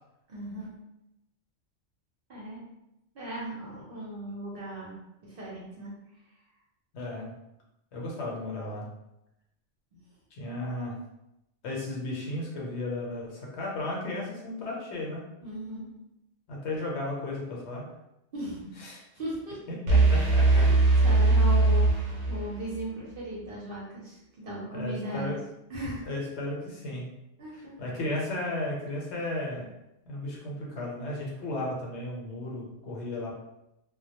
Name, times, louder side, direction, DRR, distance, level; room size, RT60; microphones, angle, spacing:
voice 1, 0.3-0.7 2.3-2.6 3.1-6.0 15.4-15.9 18.3-18.8 19.1-19.6 20.4-25.4 25.7-26.1 27.4-27.7, right 1 dB, 55° right, -5 dB, 0.8 m, -37 dB
voice 2, 6.9-7.3 7.9-8.9 10.3-11.0 11.6-15.2 16.5-17.8 18.8-19.0 19.7-20.7 24.7-25.4 26.0-27.1 27.5-29.7 30.1-33.3, left 2 dB, 70° left, -2 dB, 0.9 m, -34 dB
sound 1, 19.9-22.8, right 3 dB, 85° right, 1.0 m, -21 dB
2.1 x 2.1 x 2.8 m, 0.88 s
omnidirectional pair, 1.2 m